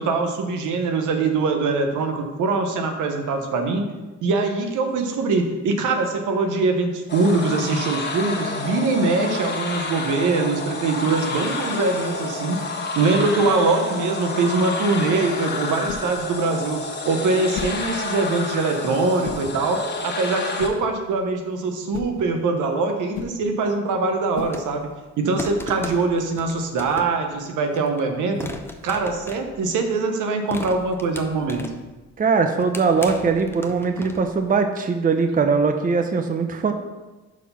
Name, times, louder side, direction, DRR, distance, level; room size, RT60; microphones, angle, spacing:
voice 1, 0.0-3.9 4.2-12.6 13.0-16.8 17.0-24.9 25.2-28.5 28.8-31.6, right 3 dB, 80° right, 5 dB, 1.0 m, -23 dB
sound 1, 7.1-20.7, left 3 dB, 35° left, 1.3 m, -30 dB
sound 2, 14.8-25.1, left 6 dB, 70° left, 0.8 m, -40 dB
sound 3, 24.4-24.9 25.4-27.3 27.8-28.0 28.4-30.0 30.5-31.9 32.4-34.4, left 1 dB, 10° left, 0.6 m, -37 dB
voice 2, 32.2-36.7, right 5 dB, 30° right, 6 dB, 0.7 m, -21 dB
6.1 x 4.6 x 5.7 m, 1.2 s
cardioid pair, 90°, 30 cm